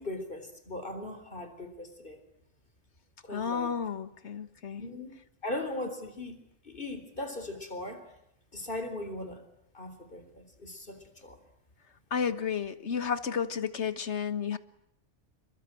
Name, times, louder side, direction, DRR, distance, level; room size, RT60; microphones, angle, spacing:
voice 1, 0.0-2.2 3.2-3.7 4.8-5.1 5.4-6.4 6.6-8.0 8.5-9.4 9.7-11.4, left 1 dB, 45° left, 4.1 m, -39 dB
voice 2, 3.3-4.8 12.1-14.6, left 7 dB, 70° left, 1.7 m, -32 dB
29.0 x 22.5 x 9.0 m
omnidirectional pair, 1.2 m